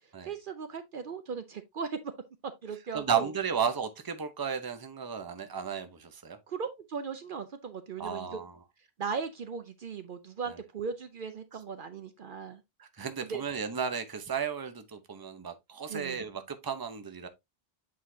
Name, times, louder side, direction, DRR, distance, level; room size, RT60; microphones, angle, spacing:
voice 1, 0.2-2.0 2.4-3.3 6.5-8.4 9.0-12.6 13.2-13.4 15.9-16.2, right 5 dB, 60° right, 0.8 m, -38 dB
voice 2, 2.9-6.4 8.0-8.5 12.8-17.3, right 7 dB, 25° right, 0.8 m, -34 dB
8.1 x 4.8 x 2.7 m
omnidirectional pair, 1.1 m